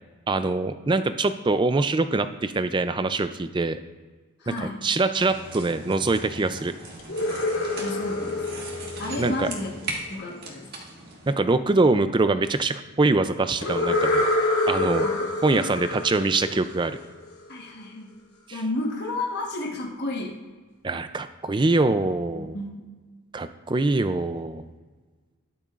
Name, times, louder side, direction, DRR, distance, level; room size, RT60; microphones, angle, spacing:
voice 1, 0.3-3.8 4.5-6.7 9.2-9.5 11.3-14.2 14.7-15.1 15.4-17.0 20.8-22.6 23.3-24.6, right 3 dB, 20° right, 11 dB, 0.3 m, -24 dB
voice 2, 4.4-4.9 7.8-8.7 9.0-9.7 10.1-10.7 14.9-16.0 17.5-18.1 18.5-20.4 22.3-22.9, left 2 dB, 50° left, -1 dB, 1.3 m, -32 dB
sound 1, 5.2-11.3, right 2 dB, 45° right, 1.5 m, -39 dB
sound 2, 7.0-10.0 13.6-17.3, left 2 dB, 90° left, 1.8 m, -27 dB
20.5 x 6.9 x 2.5 m, 1.4 s
head